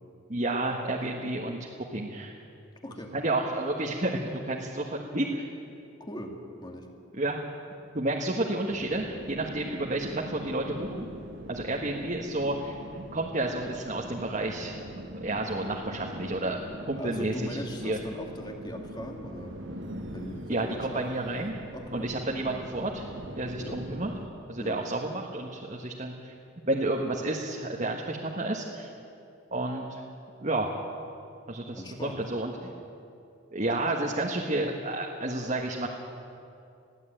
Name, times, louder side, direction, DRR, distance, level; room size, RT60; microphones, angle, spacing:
voice 1, 0.3-2.3 3.1-5.5 7.1-7.4 7.9-11.1 11.5-14.8 15.2-16.6 16.9-18.0 20.5-21.6 21.9-23.1 23.4-24.1 24.5-26.3 26.6-28.9 29.5-30.0 30.4-30.7 31.5-32.5 33.5-35.9, right 2 dB, 35° right, -1 dB, 1.5 m, -31 dB
voice 2, 2.8-3.1 6.0-6.9 17.0-19.6 20.1-21.1 21.7-22.1 23.6-23.8 24.6-24.8 31.8-32.3, equal, 20° left, 2 dB, 2.2 m, -39 dB
sound 1, 8.7-24.3, equal, 60° right, 1.5 m, -42 dB
21.5 x 15.5 x 9.1 m, 2.6 s
head